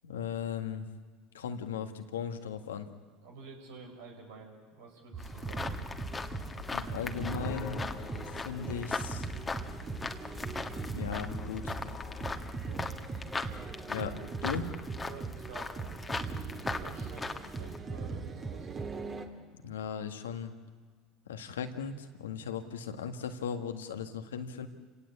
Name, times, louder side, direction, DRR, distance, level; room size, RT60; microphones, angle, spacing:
voice 1, 0.0-0.9 1.3-2.9 6.7-7.9 8.2-9.3 10.9-11.8 13.9-14.2 14.4-14.7 19.5-20.5 21.3-24.7, left 7 dB, 90° left, 7 dB, 1.8 m, -37 dB
voice 2, 3.2-5.7 12.7-13.0 15.0-18.7, right 4 dB, 80° right, 2 dB, 5.7 m, -50 dB
sound 1, 5.1-19.3, right 4 dB, 35° right, 2.9 m, -40 dB
sound 2, 5.2-12.4, left 5 dB, 50° left, 2.0 m, -46 dB
sound 3, 5.2-17.8, left 3 dB, 20° left, 1.7 m, -40 dB
28.5 x 17.5 x 8.5 m, 1.5 s
hypercardioid pair, 80°, 0 cm